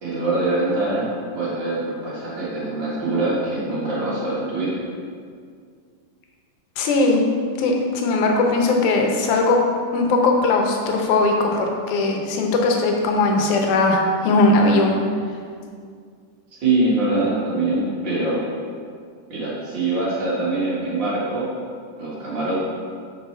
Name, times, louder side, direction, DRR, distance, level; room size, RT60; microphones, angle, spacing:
voice 1, 0.0-4.7 16.6-18.4 19.3-21.5 22.0-22.6, right 2 dB, 45° right, -7 dB, 1.9 m, -23 dB
voice 2, 6.8-7.2 7.6-9.6 9.9-15.0, left 2 dB, 75° left, 2 dB, 2.3 m, -19 dB
6.9 x 6.6 x 4.4 m, 2.1 s
omnidirectional pair, 3.7 m